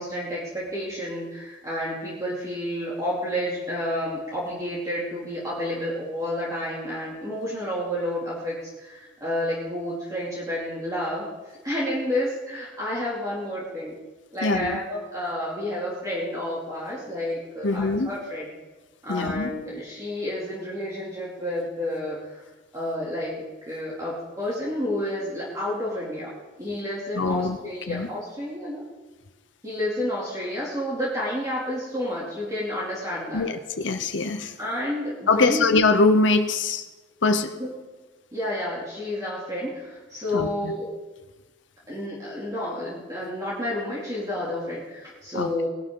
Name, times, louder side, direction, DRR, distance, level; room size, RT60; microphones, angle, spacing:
voice 1, 0.0-11.2 11.6-13.9 14.3-18.5 19.0-22.2 22.7-26.3 26.6-28.8 29.6-33.5 34.6-35.7 37.6-37.7 38.3-40.9 41.9-45.7, left 1 dB, 20° right, -7 dB, 2.7 m, -30 dB
voice 2, 14.4-14.8 17.6-18.1 19.1-19.5 27.1-27.6 27.9-28.1 33.3-34.5 35.3-36.8 37.2-37.5 40.3-40.7 45.3-45.5, left 3 dB, 70° left, 8 dB, 0.8 m, -23 dB
18.5 x 11.5 x 3.8 m, 1.2 s
head